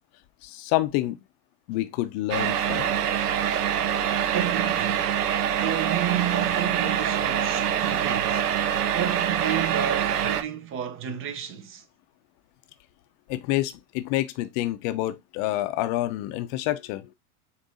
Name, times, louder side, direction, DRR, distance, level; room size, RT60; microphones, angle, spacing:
voice 1, 0.4-1.2 1.7-2.9 13.3-17.1, left 16 dB, 45° left, 0.6 m, -28 dB
sound 1, 2.3-10.4, right 9 dB, 85° right, 0.7 m, -25 dB
voice 2, 4.3-5.1 5.6-8.5 8.9-11.8, right 10 dB, 30° right, 0.7 m, -31 dB
6.8 x 2.6 x 2.6 m
hypercardioid pair, 95°, 45 cm